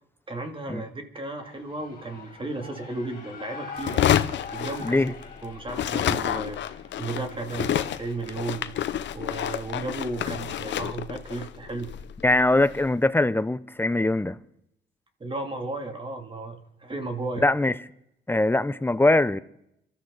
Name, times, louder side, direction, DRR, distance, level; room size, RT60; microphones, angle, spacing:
voice 1, 0.3-4.0 4.5-5.1 5.4-6.6 7.0-8.7 9.1-11.9 15.2-17.5, right 2 dB, 25° right, 2.7 m, -34 dB
Shout / Cheering, 1.4-9.2, left 5 dB, 45° left, 3.7 m, -44 dB
sound 1, 3.8-5.4 5.7-12.9, left 10 dB, 65° left, 0.8 m, -29 dB
voice 2, 12.2-14.4 17.4-17.7 18.3-19.4, left 2 dB, 10° left, 0.7 m, -22 dB
26.0 x 13.0 x 4.0 m
cardioid pair, 90°, 20 cm